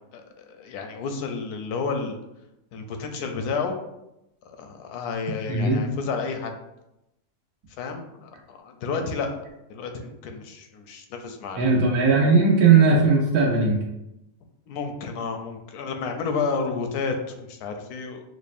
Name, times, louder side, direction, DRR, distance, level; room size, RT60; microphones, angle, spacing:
voice 1, 0.1-2.2 2.7-3.7 4.4-6.5 7.8-9.4 9.7-11.8 14.7-18.2, left 4 dB, 80° left, 5 dB, 1.1 m, -31 dB
voice 2, 11.6-13.8, right 4 dB, 75° right, -4 dB, 1.2 m, -18 dB
6.1 x 2.0 x 2.4 m, 0.88 s
omnidirectional pair, 1.6 m